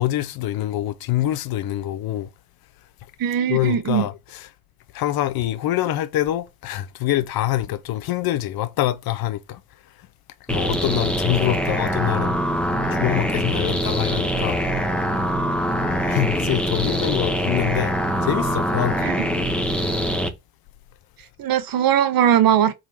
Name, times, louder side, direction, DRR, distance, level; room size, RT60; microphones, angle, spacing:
voice 1, 0.0-2.3 3.5-4.5 4.9-9.6 10.5-12.3 13.0-14.6 16.1-17.9 18.2-19.1, left 14 dB, 70° left, 0.8 m, -25 dB
voice 2, 3.2-4.0 19.0-19.2 21.4-22.7, right 10 dB, 65° right, 1.1 m, -19 dB
sound 1, 10.5-20.3, equal, 5° left, 1.4 m, -23 dB
4.3 x 3.9 x 5.5 m
cardioid pair, 85°, 38 cm